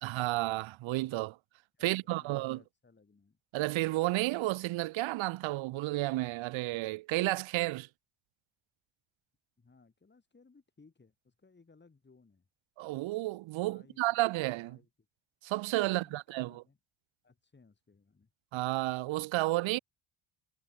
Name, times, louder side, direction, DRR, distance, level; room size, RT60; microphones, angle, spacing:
voice 1, 0.0-1.4 1.8-2.6 3.5-7.9 12.8-14.8 15.4-16.6 18.5-19.8, right 19 dB, 65° right, 0.6 m, -32 dB
voice 2, 1.7-3.4 9.6-12.5 13.6-14.0 14.6-14.9 15.8-16.8 17.2-18.3, left 4 dB, 20° left, 7.1 m, -63 dB
cardioid pair, 135°, 50 cm